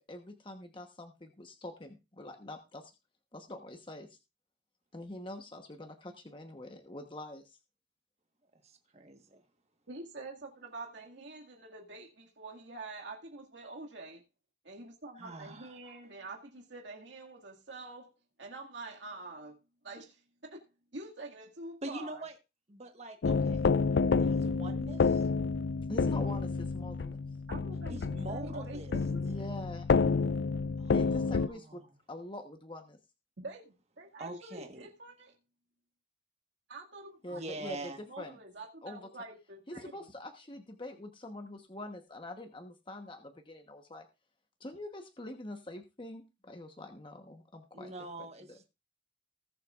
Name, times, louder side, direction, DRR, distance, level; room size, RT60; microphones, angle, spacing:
voice 1, 0.0-2.8 3.3-4.1 4.9-7.6 25.9-27.2 29.3-29.9 30.9-31.8 32.1-33.0 37.2-37.8 38.2-38.4 38.8-39.1 39.7-44.0 44.6-47.9 48.2-48.6, left 1 dB, 25° left, 1.1 m, -45 dB
voice 2, 8.6-9.4 15.2-16.0 21.8-22.3 22.7-23.7 24.2-25.3 27.9-28.9 30.8-31.9 34.2-34.9 37.3-38.0 47.7-48.7, right 2 dB, 35° right, 1.4 m, -44 dB
voice 3, 9.9-14.2 14.6-18.1 18.4-19.6 19.8-20.7 20.9-22.2 27.5-28.0 28.3-29.3 33.4-35.4 36.7-40.1, right 2 dB, 75° right, 2.1 m, -46 dB
sound 1, 23.2-31.5, left 4 dB, 65° left, 0.4 m, -29 dB
19.5 x 7.5 x 2.5 m
head